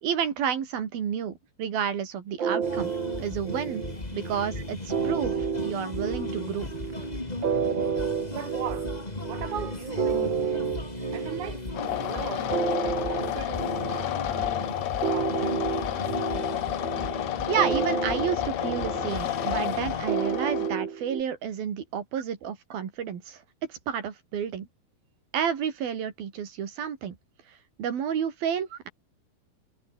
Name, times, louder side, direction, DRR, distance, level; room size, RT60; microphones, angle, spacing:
voice 1, 0.0-2.9 3.2-3.8 4.1-5.3 5.6-6.7 17.5-23.4 23.7-24.7 25.3-27.2 27.8-28.9, right 8 dB, 80° right, 4.7 m, -30 dB
sound 1, 2.4-21.2, right 7 dB, 40° right, 2.1 m, -31 dB
sound 2, 2.6-20.1, left 2 dB, 15° left, 2.2 m, -37 dB
voice 2, 8.3-8.9 9.3-10.7 11.0-11.7 11.9-14.6 15.1-15.8 28.7-28.8, right 9 dB, 55° right, 4.2 m, -39 dB
sound 3, 11.7-20.7, left 14 dB, 70° left, 1.7 m, -31 dB
omnidirectional pair, 4.1 m